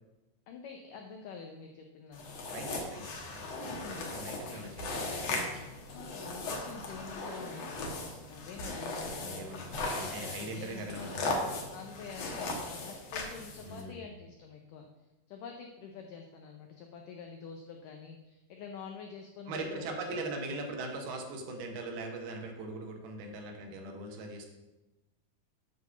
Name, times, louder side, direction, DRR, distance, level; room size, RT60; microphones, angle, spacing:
voice 1, 0.5-2.4 3.7-4.1 4.4-4.8 5.9-9.8 10.4-11.0 11.7-14.9 15.3-19.9, left 5 dB, 85° left, 3 dB, 1.9 m, -47 dB
sound 1, 2.1-13.8, left 2 dB, 60° left, 1.8 m, -38 dB
voice 2, 2.5-5.7 9.2-11.5 13.6-14.0 19.5-24.5, right 2 dB, 75° right, 2 dB, 3.1 m, -41 dB
9.2 x 4.9 x 6.9 m, 1.0 s
omnidirectional pair, 4.7 m